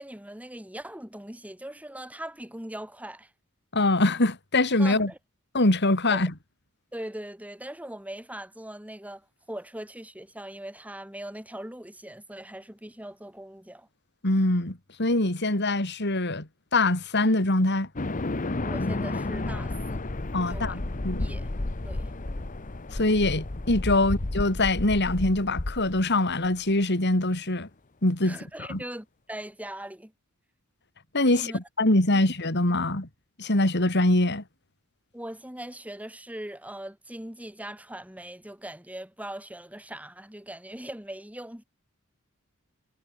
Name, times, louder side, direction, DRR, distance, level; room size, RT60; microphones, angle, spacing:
voice 1, 0.0-3.3 4.8-5.2 6.1-6.3 6.9-13.9 18.6-20.0 20.5-20.8 21.2-21.5 21.8-22.1 24.0-24.1 28.2-30.1 31.3-31.6 35.1-41.6, right 1 dB, 5° right, 5.3 m, -40 dB
voice 2, 3.7-5.1 5.5-6.3 14.2-17.9 20.3-21.3 22.9-27.7 28.0-28.8 31.1-33.1 33.4-34.4, left 2 dB, 55° left, 3.6 m, -24 dB
sound 1, 18.0-26.5, left 2 dB, 40° left, 1.1 m, -32 dB
head